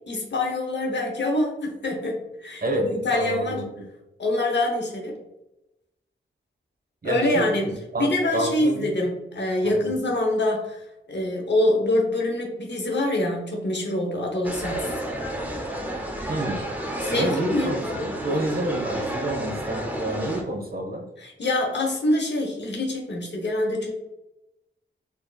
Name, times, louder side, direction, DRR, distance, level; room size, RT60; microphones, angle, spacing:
voice 1, 0.0-3.6 4.2-5.2 7.0-7.7 8.0-14.9 17.0-17.7 21.2-23.9, left 1 dB, 60° left, 0 dB, 1.0 m, -25 dB
voice 2, 2.6-3.7 7.0-8.9 9.8-9.9 16.3-16.6 17.1-21.1, right 1 dB, 45° right, 1 dB, 1.2 m, -29 dB
sound 1, 14.4-20.4, right 1 dB, 10° right, 0.9 m, -31 dB
4.5 x 2.9 x 2.3 m, 0.93 s
cardioid pair, 40°, 21 cm